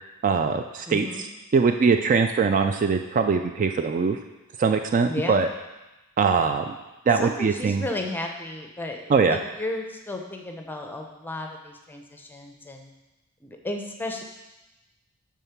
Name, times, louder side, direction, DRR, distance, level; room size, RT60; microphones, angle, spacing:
voice 1, 0.2-1.3 1.5-4.2 4.6-5.5 6.2-6.7 7.1-7.8 9.1-9.4, right 5 dB, 40° right, 6 dB, 0.3 m, -22 dB
voice 2, 0.9-1.3 5.1-5.4 7.2-12.9 13.4-14.2, left 1 dB, 10° left, 3 dB, 0.6 m, -34 dB
7.1 x 3.6 x 5.8 m, 1.0 s
head